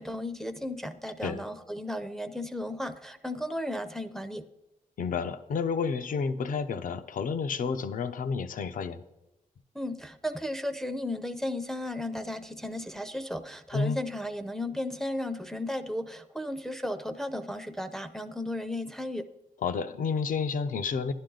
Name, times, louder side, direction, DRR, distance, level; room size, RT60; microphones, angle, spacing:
voice 1, 0.0-4.4 9.7-19.3, left 1 dB, 5° left, 7 dB, 0.5 m, -34 dB
voice 2, 5.0-9.0 13.7-14.0 19.6-21.1, left 5 dB, 70° left, 11 dB, 0.6 m, -30 dB
11.5 x 10.5 x 3.8 m, 0.93 s
wide cardioid pair, 165°, 15 cm